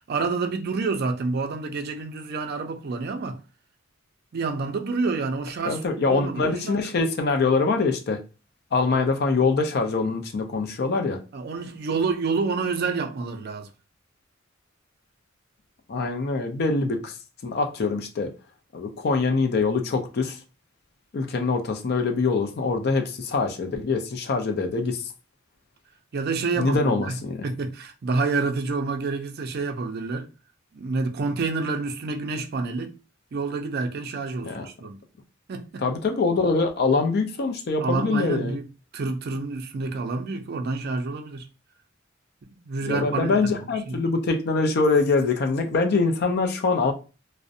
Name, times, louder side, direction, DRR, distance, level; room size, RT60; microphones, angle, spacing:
voice 1, 0.1-3.4 4.3-6.9 11.3-13.7 26.1-27.2 27.4-30.3 30.7-32.9 33.3-35.0 35.5-35.8 37.8-38.7 38.9-41.5 42.5-43.5 43.9-44.0, right 4 dB, 50° right, 0.4 m, -28 dB
voice 2, 5.6-8.2 8.7-11.2 15.9-17.1 17.4-18.3 18.7-20.4 21.1-25.1 26.6-27.4 34.4-34.7 35.8-38.6 42.9-46.9, left 4 dB, 55° left, 0.4 m, -24 dB
2.4 x 2.0 x 2.6 m
head